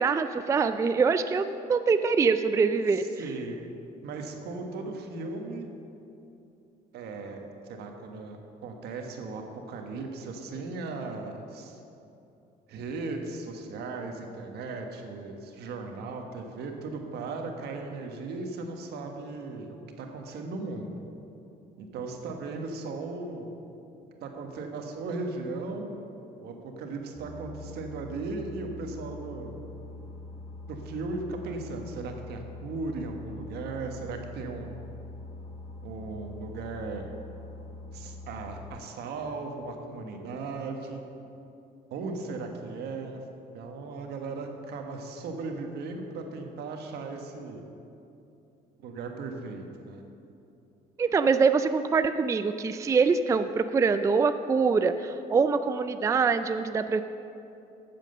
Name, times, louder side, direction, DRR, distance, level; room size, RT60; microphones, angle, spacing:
voice 1, 0.0-3.0 51.0-57.0, right 5 dB, 20° right, 10 dB, 0.3 m, -24 dB
voice 2, 2.9-3.6 4.0-5.7 6.9-8.4 8.6-11.8 12.7-20.9 21.8-23.5 24.2-25.9 26.4-29.5 30.7-34.8 35.8-37.1 37.9-41.0 41.9-43.2 43.5-47.6 48.8-50.0, right 3 dB, 75° right, 3 dB, 1.3 m, -37 dB
Boat Water vehicle, 27.2-38.7, left 2 dB, 40° left, 1.7 m, -43 dB
9.1 x 7.5 x 6.7 m, 2.8 s
cardioid pair, 110°, 17 cm